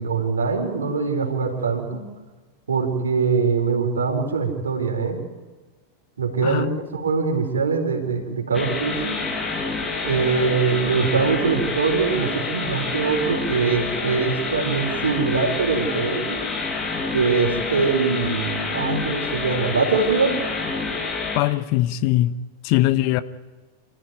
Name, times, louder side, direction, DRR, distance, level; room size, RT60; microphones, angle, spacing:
voice 1, 0.0-2.0 2.7-5.2 6.2-9.2 10.0-16.4 17.1-20.3, right 5 dB, 70° right, 4.3 m, -23 dB
voice 2, 6.4-6.8 21.3-22.4 22.6-23.2, left 15 dB, 45° left, 0.9 m, -21 dB
sound 1, 8.5-21.4, left 4 dB, 20° left, 5.3 m, -28 dB
27.0 x 14.5 x 9.5 m
figure-of-eight pair, 90°, 0 cm